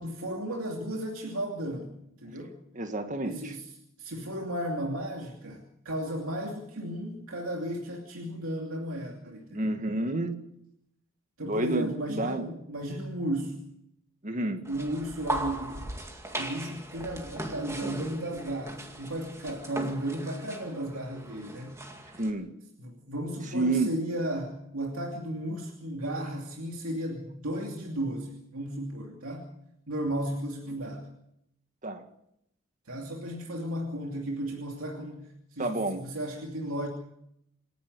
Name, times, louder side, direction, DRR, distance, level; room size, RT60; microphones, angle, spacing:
voice 1, 0.0-1.9 2.2-2.6 3.2-3.6 4.0-9.8 11.4-13.6 14.7-15.8 16.3-21.8 22.8-29.5 29.9-31.1 32.9-36.9, right 1 dB, 75° right, 1 dB, 2.7 m, -34 dB
voice 2, 2.7-3.6 9.5-10.4 11.4-12.5 14.2-14.6 22.2-22.5 23.4-23.9 31.8-32.0 35.6-36.1, right 2 dB, 35° right, 6 dB, 1.8 m, -29 dB
sound 1, 14.7-22.3, right 1 dB, 15° right, 2.2 m, -38 dB
27.0 x 11.0 x 9.6 m, 0.78 s
head